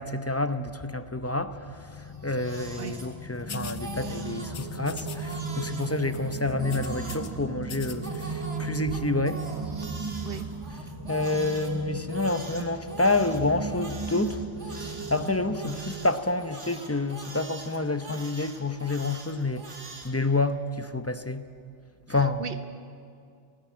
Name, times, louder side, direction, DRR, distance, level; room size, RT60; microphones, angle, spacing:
voice 1, 0.0-21.4 22.1-22.5, left 2 dB, 15° left, 10 dB, 0.6 m, -29 dB
Crying sobbing, 2.0-3.4 3.7-4.5 5.0-7.3 7.9-11.7 12.1-20.1, right 2 dB, 80° right, 2.5 m, -43 dB
sound 1, 3.4-16.1, right 5 dB, 20° right, 0.8 m, -36 dB
sound 2, 3.5-3.8 4.5-5.4 5.6-5.9 6.1-7.3 7.6-8.3, left 7 dB, 80° left, 1.4 m, -42 dB
voice 2, 22.1-22.6, right 6 dB, 55° right, 9 dB, 1.3 m, -38 dB
19.5 x 19.0 x 9.2 m, 2.3 s
omnidirectional pair, 1.2 m